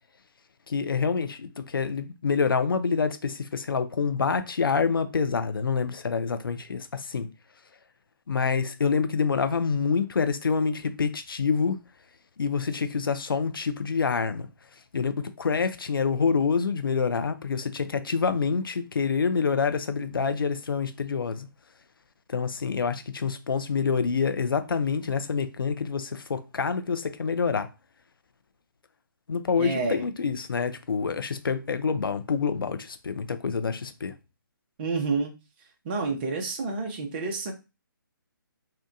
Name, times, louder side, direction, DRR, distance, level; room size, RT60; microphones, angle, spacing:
voice 1, 0.7-7.3 8.3-11.8 12.4-14.5 14.9-21.5 22.3-27.7 29.3-34.1, left 5 dB, 75° left, 0.4 m, -27 dB
voice 2, 29.6-30.0 34.8-35.3 35.8-37.5, right 4 dB, 25° right, 0.5 m, -29 dB
2.7 x 2.1 x 2.5 m
figure-of-eight pair, 140°, 12 cm